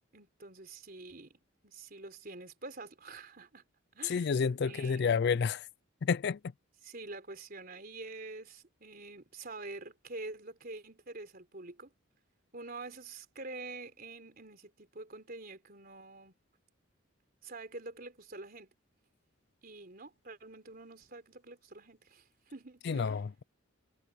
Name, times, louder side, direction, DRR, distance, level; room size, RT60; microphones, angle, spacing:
voice 1, 0.1-3.6 3.9-4.4 4.6-5.2 6.8-11.9 12.5-16.4 17.4-18.7 19.6-23.2, right 3 dB, 45° right, 3.9 m, -47 dB
voice 2, 4.0-5.7 6.0-6.4 22.9-23.4, left 5 dB, 55° left, 0.4 m, -30 dB
head